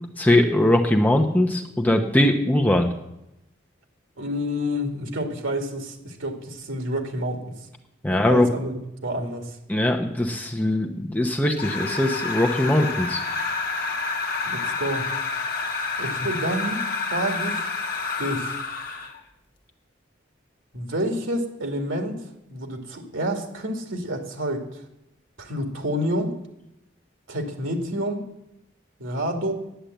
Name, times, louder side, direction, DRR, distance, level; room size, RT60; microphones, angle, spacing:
voice 1, 0.2-2.9 8.0-8.5 9.7-13.2, left 1 dB, 10° left, 3 dB, 0.8 m, -21 dB
voice 2, 4.2-7.4 8.0-9.6 14.5-15.1 16.0-17.7 18.2-18.6 20.7-22.2 22.5-24.8 25.4-26.3 27.3-28.3 29.0-29.5, equal, 85° right, 5 dB, 2.1 m, -29 dB
sound 1, 11.6-19.2, left 3 dB, 50° left, 1.4 m, -29 dB
10.0 x 8.8 x 8.0 m, 0.86 s
head